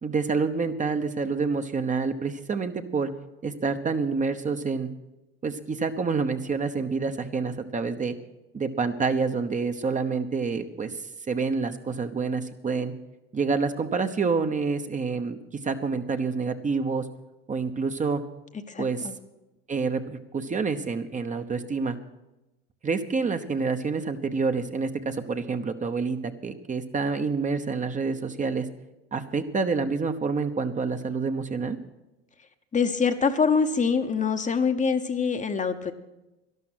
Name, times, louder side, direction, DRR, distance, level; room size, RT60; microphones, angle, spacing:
voice 1, 0.0-3.1 3.4-4.9 5.4-8.2 8.5-12.9 13.3-17.1 17.5-18.2 18.8-19.1 19.7-22.0 22.8-28.7 29.1-31.8, right 4 dB, 25° right, 7 dB, 1.0 m, -28 dB
voice 2, 18.7-19.1 32.7-35.9, left 5 dB, 25° left, 8 dB, 1.0 m, -24 dB
12.0 x 12.0 x 6.3 m, 0.98 s
hypercardioid pair, 80°, 31 cm